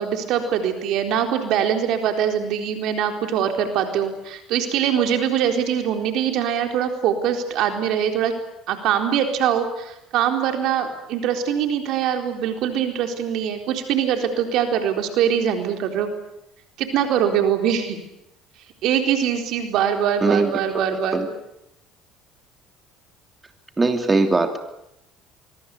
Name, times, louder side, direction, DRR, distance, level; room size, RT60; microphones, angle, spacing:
voice 1, 0.0-8.3 8.7-16.1 16.8-18.0 18.8-21.3, right 8 dB, 65° right, 5 dB, 4.0 m, -23 dB
voice 2, 20.2-20.5 21.1-21.3 23.8-24.6, right 3 dB, 20° right, 6 dB, 3.1 m, -19 dB
24.0 x 23.0 x 8.4 m, 0.82 s
hypercardioid pair, 70°, 0 cm